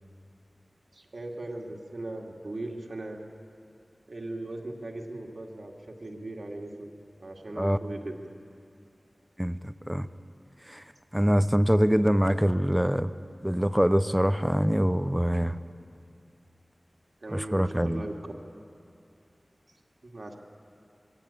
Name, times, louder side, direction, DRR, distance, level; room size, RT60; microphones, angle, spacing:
voice 1, 0.9-3.2 4.1-6.9 7.2-8.1 17.2-18.1 20.0-20.4, right 2 dB, 70° right, 0 dB, 2.2 m, -38 dB
voice 2, 9.4-10.1 10.7-10.8 11.1-13.1 13.4-15.6 17.3-18.0, equal, 5° right, 13 dB, 0.7 m, -24 dB
22.0 x 17.0 x 8.7 m, 2.5 s
wide cardioid pair, 50°, 0 cm